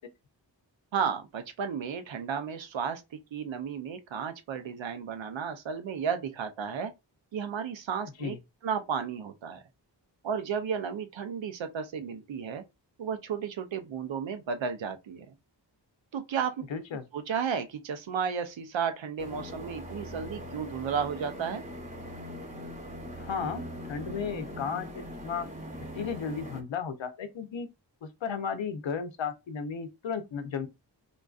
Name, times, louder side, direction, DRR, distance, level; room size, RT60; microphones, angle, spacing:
voice 1, 0.9-6.9 7.3-8.4 8.6-9.6 10.2-12.6 13.0-15.3 16.1-16.6 17.1-21.6, right 7 dB, 85° right, 0.6 m, -33 dB
voice 2, 16.7-17.0 23.2-24.9 25.2-25.5 25.9-27.7 28.0-30.7, left 6 dB, 90° left, 0.6 m, -34 dB
sound 1, 19.2-26.6, equal, 15° right, 0.8 m, -41 dB
3.8 x 2.5 x 2.3 m
wide cardioid pair, 95°, 44 cm